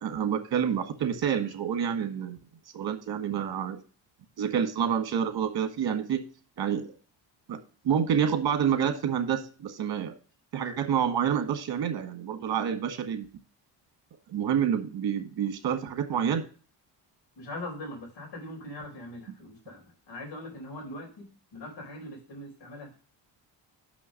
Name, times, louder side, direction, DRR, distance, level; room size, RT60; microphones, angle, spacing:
voice 1, 0.0-2.4 2.7-3.8 4.4-6.2 6.6-6.8 7.5-7.6 7.8-10.1 10.5-13.3 14.3-16.4, right 8 dB, 55° right, 7 dB, 1.5 m, -28 dB
voice 2, 17.4-23.0, left 1 dB, 70° left, 0 dB, 4.4 m, -41 dB
5.9 x 5.9 x 6.3 m, 0.38 s
cardioid pair, 85°, 45 cm